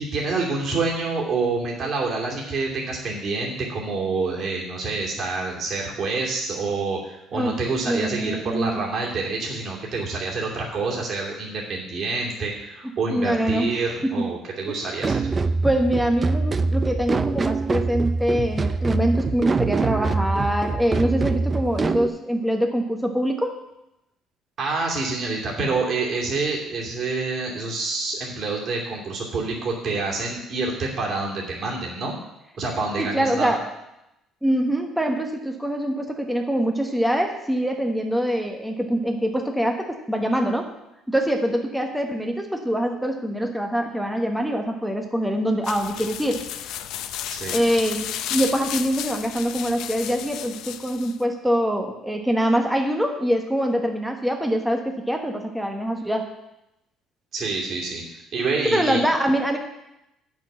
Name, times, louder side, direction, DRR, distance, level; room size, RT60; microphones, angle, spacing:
voice 1, 0.0-15.2 24.6-32.1 32.6-33.5 47.3-47.6 57.3-58.0 58.3-59.1, right 3 dB, 45° right, -2 dB, 2.7 m, -27 dB
voice 2, 7.9-8.8 13.1-13.7 14.0-14.3 14.7-14.8 15.6-23.5 33.0-33.7 34.4-40.7 41.1-46.4 47.5-56.3 58.6-59.6, equal, ahead, 3 dB, 1.1 m, -24 dB
sound 1, 15.0-22.1, right 4 dB, 25° right, 0.4 m, -24 dB
sound 2, 45.6-51.2, left 11 dB, 75° left, 0.6 m, -33 dB
8.9 x 6.1 x 7.4 m, 0.88 s
cardioid pair, 125°, 0 cm